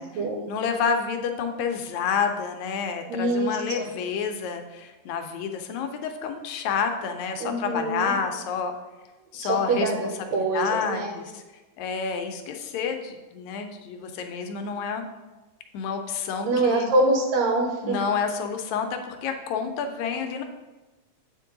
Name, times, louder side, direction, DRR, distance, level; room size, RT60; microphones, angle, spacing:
voice 1, 0.5-8.7 9.3-9.9 10.3-11.4 11.8-15.1 15.7-16.9 17.8-20.4, left 6 dB, 80° left, 6 dB, 1.8 m, -29 dB
voice 2, 3.1-3.9 7.4-8.1 9.4-11.2 16.5-18.0, right 2 dB, 70° right, 2 dB, 2.0 m, -25 dB
8.3 x 4.5 x 3.8 m, 1.1 s
omnidirectional pair, 3.4 m